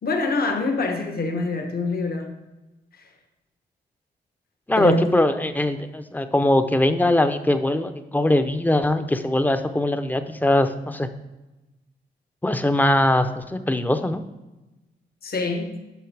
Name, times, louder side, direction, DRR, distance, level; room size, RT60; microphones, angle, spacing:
voice 1, 0.0-2.4 4.8-5.1 15.2-15.8, left 3 dB, 55° left, 4 dB, 1.2 m, -25 dB
voice 2, 4.7-11.1 12.4-14.2, left 1 dB, 10° left, 9 dB, 0.7 m, -21 dB
10.5 x 5.7 x 3.4 m, 1.1 s
cardioid pair, 70°, 19 cm